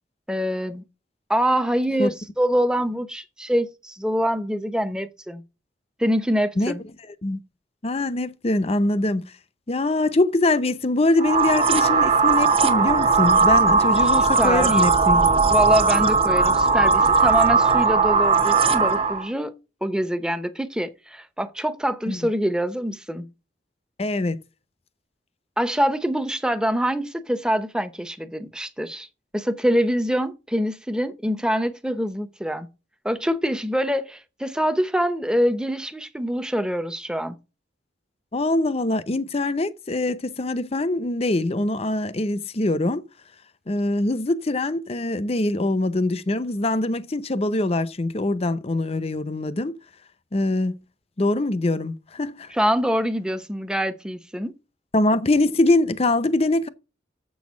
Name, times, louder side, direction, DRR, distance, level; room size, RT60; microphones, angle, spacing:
voice 1, 0.3-0.8 1.3-5.4 6.0-6.8 13.9-14.8 15.5-19.5 19.8-23.3 25.6-29.1 29.3-32.7 33.0-37.4 52.5-54.5, equal, 5° right, 0.7 m, -25 dB
voice 2, 7.8-9.3 9.7-15.3 22.1-22.2 24.0-24.4 38.3-43.0 43.7-49.7 50.3-50.8 51.2-52.5 54.9-56.7, left 2 dB, 35° left, 0.7 m, -23 dB
sound 1, 11.2-19.3, right 4 dB, 30° right, 1.0 m, -18 dB
7.7 x 6.3 x 6.1 m
head